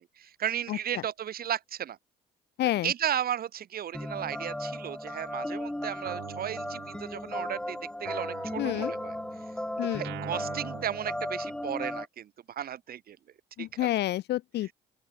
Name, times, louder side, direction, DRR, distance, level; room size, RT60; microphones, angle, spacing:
voice 1, 0.2-2.0 2.8-9.2 9.8-13.2 13.6-13.7, right 10 dB, 55° right, 2.4 m, -34 dB
voice 2, 2.6-2.9 8.6-8.9 9.8-10.0 13.6-14.7, left 14 dB, 70° left, 1.4 m, -29 dB
sound 1, 3.9-12.1, left 1 dB, 5° left, 0.6 m, -36 dB
Guitar, 6.0-7.6 8.0-11.9, right 17 dB, 75° right, 7.0 m, -46 dB
open air
supercardioid pair, 70°, 18 cm